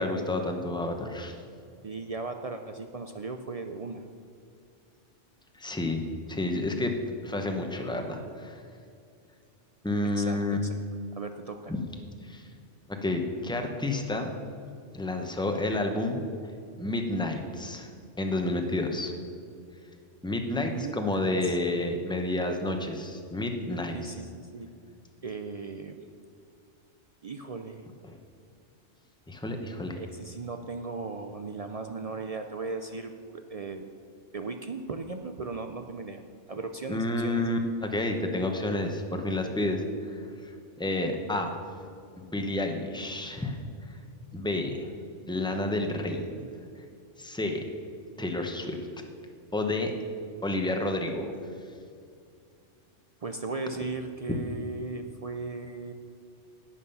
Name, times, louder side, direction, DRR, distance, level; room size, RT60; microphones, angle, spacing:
voice 1, 0.0-1.3 5.5-6.0 6.3-6.9 7.2-8.6 9.8-10.6 11.7-11.8 12.2-12.5 12.9-14.3 14.9-16.2 16.8-17.9 18.2-19.1 20.2-24.0 28.0-28.2 29.3-30.0 36.9-40.5 40.8-41.5 42.2-43.6 43.9-44.0 44.3-44.9 45.3-46.5 47.2-47.6 48.2-48.8 49.5-49.9 50.4-51.3 54.3-54.4, left 2 dB, 5° left, 4 dB, 0.8 m, -30 dB
voice 2, 1.8-4.1 10.1-10.8 11.1-11.7 20.6-21.5 23.9-24.7 25.2-26.0 27.2-27.8 29.9-33.9 34.3-36.2 36.5-37.5 53.2-55.9, right 3 dB, 55° right, 6 dB, 0.4 m, -37 dB
11.0 x 8.7 x 5.5 m, 2.4 s
omnidirectional pair, 1.3 m